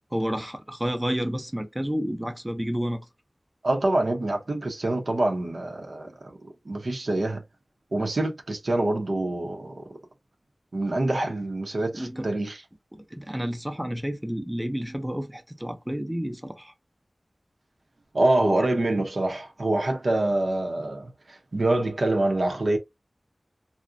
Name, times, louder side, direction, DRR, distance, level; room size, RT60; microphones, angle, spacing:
voice 1, 0.1-3.0 11.9-12.3 13.1-16.7, equal, 15° right, 0.5 m, -30 dB
voice 2, 3.6-7.4 7.9-10.0 10.7-12.6 18.1-22.8, right 2 dB, 75° right, 0.6 m, -26 dB
2.5 x 2.0 x 2.5 m
wide cardioid pair, 40°, 0 cm